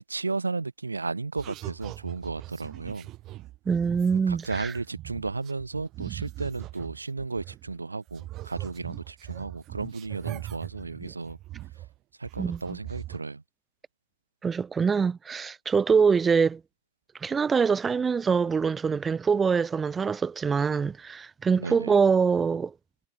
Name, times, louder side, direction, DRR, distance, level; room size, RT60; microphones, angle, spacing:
voice 1, 0.0-3.1 4.3-11.4 12.2-13.4 21.6-21.9, right 3 dB, 80° right, 1.9 m, -34 dB
sound 1, 1.4-7.8 8.1-12.0 12.2-13.2, right 16 dB, 35° right, 4.5 m, -41 dB
voice 2, 3.7-4.8 12.4-12.8 14.4-16.6 17.2-22.7, right 5 dB, 15° right, 1.3 m, -24 dB
figure-of-eight pair, 90°, 0 cm